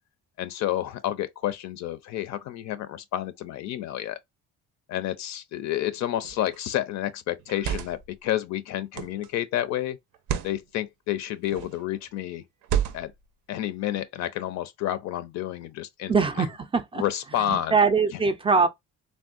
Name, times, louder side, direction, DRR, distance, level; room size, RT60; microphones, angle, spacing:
voice 1, 0.4-4.2 4.9-10.0 10.4-12.5 12.9-13.1 13.5-16.1 16.9-17.8, left 12 dB, 65° left, 0.4 m, -30 dB
sound 1, 6.2-6.6 7.4-8.1 8.9-9.3 10.1-10.6 11.5-11.8 12.6-13.2, right 9 dB, 80° right, 0.5 m, -30 dB
voice 2, 16.1-17.0 17.4-18.7, right 5 dB, 20° right, 0.3 m, -22 dB
3.5 x 2.2 x 2.4 m
cardioid pair, 155°, 29 cm